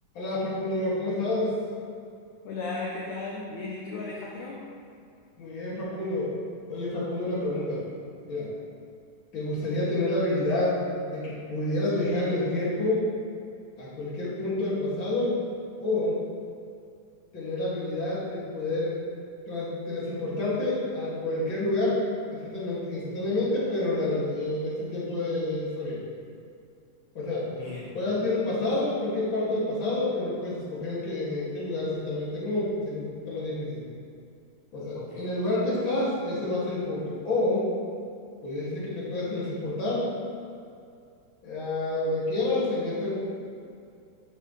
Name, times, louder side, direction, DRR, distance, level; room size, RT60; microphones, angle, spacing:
voice 1, 0.1-1.5 5.4-6.3 6.7-7.8 8.3-8.5 9.3-13.1 13.8-15.4 15.8-16.2 17.3-18.9 19.5-26.0 27.1-27.5 27.9-33.8 34.7-37.7 38.4-40.1 41.4-43.1, left 2 dB, 35° left, -8 dB, 3.0 m, -28 dB
voice 2, 2.4-4.6 27.6-28.1 35.0-35.3, left 3 dB, 70° left, -4 dB, 2.2 m, -36 dB
12.5 x 7.7 x 3.4 m, 2.4 s
omnidirectional pair, 3.9 m